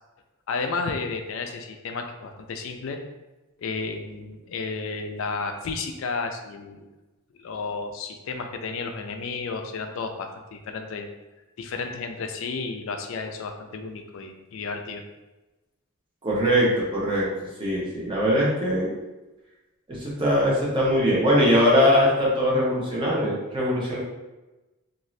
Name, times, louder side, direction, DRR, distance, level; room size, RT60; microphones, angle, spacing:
voice 1, 0.5-3.0 3.6-6.9 7.4-11.1 11.6-15.0, left 4 dB, 65° left, 5 dB, 0.3 m, -32 dB
voice 2, 16.2-17.3 17.6-18.9 19.9-24.0, equal, 25° right, -5 dB, 0.7 m, -21 dB
2.6 x 2.4 x 3.1 m, 1.1 s
head